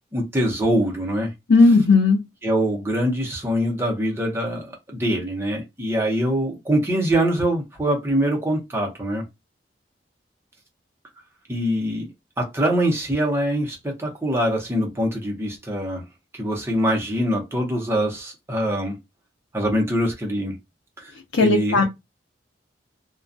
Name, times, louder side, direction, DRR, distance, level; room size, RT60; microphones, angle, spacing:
voice 1, 0.1-1.3 2.4-9.2 11.5-12.1 12.4-16.0 16.3-19.0 19.5-20.6 21.0-21.1 21.4-21.8, equal, 15° right, 0.7 m, -23 dB
voice 2, 1.5-2.2 21.3-21.8, left 3 dB, 90° left, 0.5 m, -15 dB
2.3 x 2.2 x 2.5 m
head